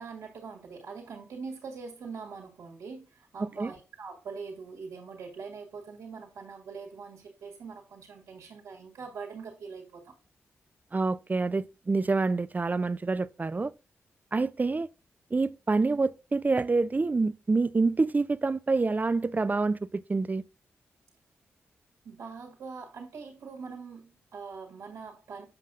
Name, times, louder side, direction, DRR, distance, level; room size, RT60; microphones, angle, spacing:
voice 1, 0.0-10.1 22.0-25.5, right 5 dB, 85° right, 1.9 m, -43 dB
voice 2, 3.4-3.7 10.9-13.7 14.3-14.9 15.3-20.4, right 3 dB, 30° right, 0.4 m, -27 dB
7.7 x 6.1 x 2.4 m
supercardioid pair, 45°, 5 cm